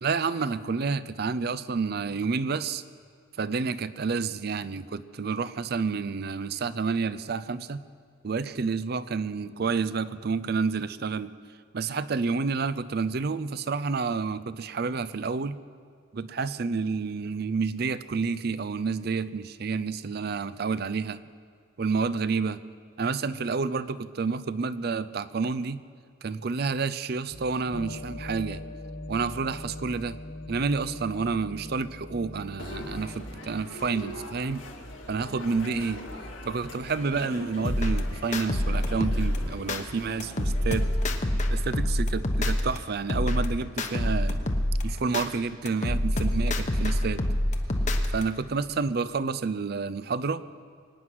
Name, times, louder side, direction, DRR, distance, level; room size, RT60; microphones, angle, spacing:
voice 1, 0.0-2.8 3.4-7.8 8.2-11.3 11.7-15.6 16.1-21.2 21.8-22.6 23.0-25.8 26.2-28.6 29.1-30.2 30.5-34.6 35.1-36.0 36.4-40.9 41.5-44.4 44.8-47.2 48.1-50.4, right 4 dB, 55° right, 15 dB, 0.5 m, -29 dB
sound 1, 27.3-33.6, left 1 dB, 60° left, 1.2 m, -41 dB
sound 2, 32.6-41.2, left 1 dB, 85° left, 2.0 m, -41 dB
sound 3, 37.6-39.8 40.2-42.8 43.1-45.3 45.7-48.2, left 1 dB, 40° left, 1.0 m, -26 dB
24.0 x 9.5 x 6.2 m, 2.1 s
head